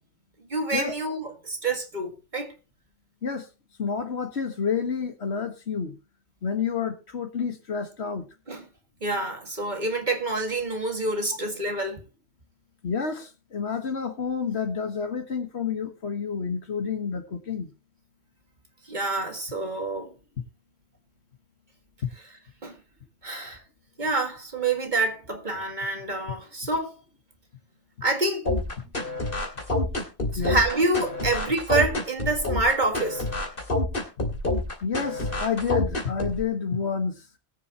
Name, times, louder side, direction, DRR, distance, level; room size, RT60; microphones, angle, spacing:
voice 1, 0.5-2.5 8.5-8.7 9.0-12.0 18.9-20.1 22.6-22.8 23.2-23.6 24.0-26.9 28.0-28.5 30.4-33.2, right 2 dB, 45° right, 2.1 m, -27 dB
voice 2, 3.8-6.0 6.4-8.3 12.8-17.7 22.0-22.1 30.4-30.6 34.8-37.3, left 6 dB, 70° left, 1.8 m, -29 dB
sound 1, 28.4-36.4, left 2 dB, 50° left, 2.8 m, -27 dB
20.5 x 7.0 x 3.0 m
omnidirectional pair, 1.2 m